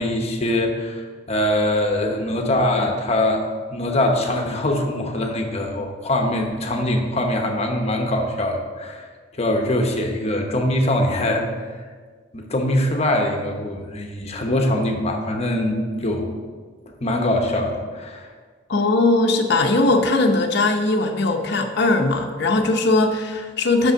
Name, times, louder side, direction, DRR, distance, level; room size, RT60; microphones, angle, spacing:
voice 1, 0.0-3.5 3.7-9.0 9.3-11.5 12.3-16.3 17.0-18.3, left 1 dB, 35° left, 3 dB, 0.9 m, -22 dB
voice 2, 18.7-23.9, left 2 dB, 60° left, 3 dB, 0.7 m, -19 dB
6.2 x 5.4 x 6.2 m, 1.5 s
head